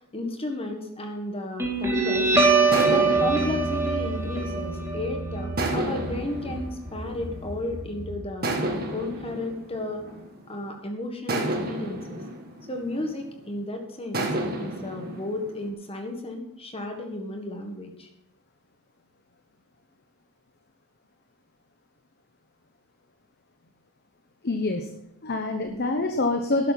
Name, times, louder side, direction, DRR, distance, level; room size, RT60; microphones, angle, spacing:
voice 1, 0.0-2.3 2.7-8.5 8.9-10.0 10.5-12.2 12.7-14.3 14.6-18.1, left 2 dB, 25° left, 4 dB, 1.7 m, -33 dB
Guitar, 1.6-8.6, right 3 dB, 15° right, 2.7 m, -25 dB
sound 1, 1.8-2.1 2.7-5.0 5.6-7.8 8.4-10.6 11.3-13.5 14.1-15.7, right 1 dB, 45° right, 2.3 m, -32 dB
voice 2, 24.4-24.9 25.2-26.7, left 2 dB, 50° left, 5 dB, 1.1 m, -25 dB
12.5 x 11.0 x 4.2 m, 0.80 s
head